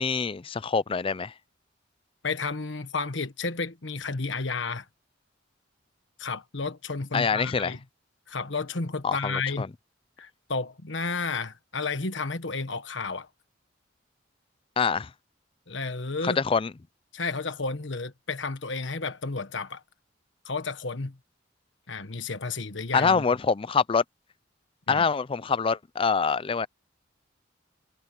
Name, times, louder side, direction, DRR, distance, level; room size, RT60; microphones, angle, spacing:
voice 1, 0.0-1.3 7.1-7.8 9.0-9.7 14.8-15.1 16.2-16.7 22.9-24.0 24.9-26.7, left 5 dB, 30° left, 0.4 m, -25 dB
voice 2, 2.2-4.9 6.2-7.8 8.3-9.7 10.2-13.3 15.7-16.4 17.1-19.8 20.4-21.2 21.9-23.2 24.9-25.0, left 4 dB, 70° left, 1.5 m, -32 dB
head